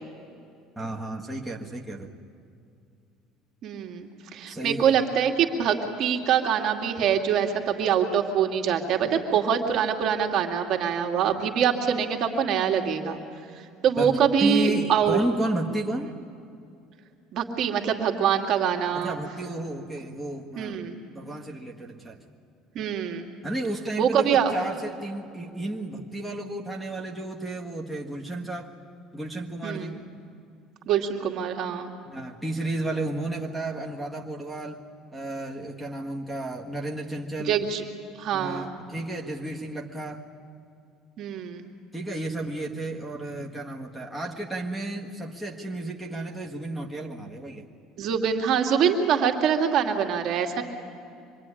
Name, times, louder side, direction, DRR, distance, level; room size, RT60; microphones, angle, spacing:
voice 1, 0.8-2.1 4.5-5.0 14.0-14.1 14.4-16.1 18.9-22.2 23.4-28.7 29.1-30.0 32.0-34.8 35.1-37.6 38.3-40.2 41.9-47.6, right 1 dB, 5° right, -3 dB, 1.6 m, -32 dB
voice 2, 3.6-13.2 13.8-15.2 17.3-19.2 20.6-20.9 22.7-23.3 24.0-24.5 29.6-29.9 30.9-31.9 37.5-37.8 38.2-38.7 41.2-41.7 48.0-50.6, right 8 dB, 50° right, 3 dB, 2.4 m, -24 dB
26.0 x 22.5 x 10.0 m, 2.5 s
cardioid pair, 150°, 0 cm